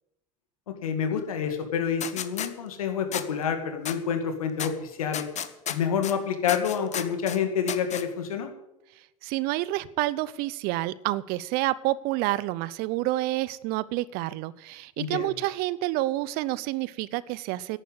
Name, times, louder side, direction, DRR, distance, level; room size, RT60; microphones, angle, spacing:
voice 1, 0.7-5.3 5.7-8.5 15.0-15.4, left 7 dB, 85° left, 6 dB, 2.3 m, -28 dB
sound 1, 2.0-2.5 3.1-3.3 3.9-4.0 4.6-4.7 5.1-6.1 6.5-7.4 7.7-8.0, left 10 dB, 40° left, 1.4 m, -32 dB
voice 2, 9.2-17.8, right 17 dB, 60° right, 19 dB, 0.8 m, -29 dB
11.0 x 9.3 x 9.8 m, 0.89 s
hypercardioid pair, 80°, 18 cm